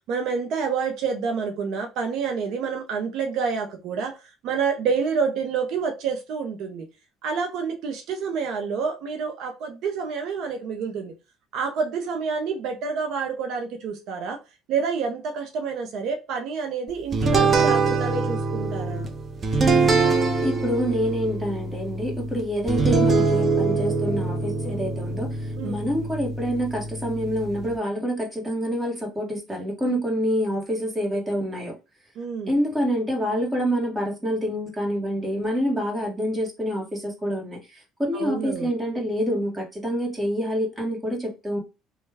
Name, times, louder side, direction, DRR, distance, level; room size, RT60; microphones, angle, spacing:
voice 1, 0.1-4.1 4.4-6.9 7.2-11.1 11.5-14.4 14.7-19.1 25.6-25.7 31.1-31.2 32.2-32.5 38.1-38.7, right 5 dB, 65° right, 0.7 m, -28 dB
sound 1, 17.1-27.8, right 4 dB, 35° right, 0.7 m, -24 dB
voice 2, 20.4-31.7 32.5-37.6 38.0-41.6, equal, 15° right, 1.5 m, -27 dB
3.2 x 2.3 x 3.3 m
supercardioid pair, 90°, 0 cm